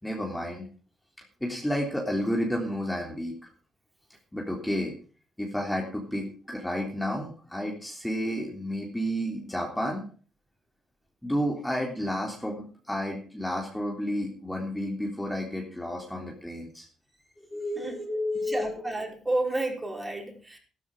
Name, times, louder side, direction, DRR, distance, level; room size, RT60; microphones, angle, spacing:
voice 1, 0.0-0.7 1.4-3.3 4.3-4.9 5.4-10.0 11.2-16.9 17.5-18.9, equal, 5° left, 0 dB, 3.6 m, -31 dB
voice 2, 18.5-20.6, right 2 dB, 15° right, 2 dB, 5.4 m, -31 dB
13.5 x 13.5 x 5.0 m, 0.41 s
cardioid pair, 90°, 0 cm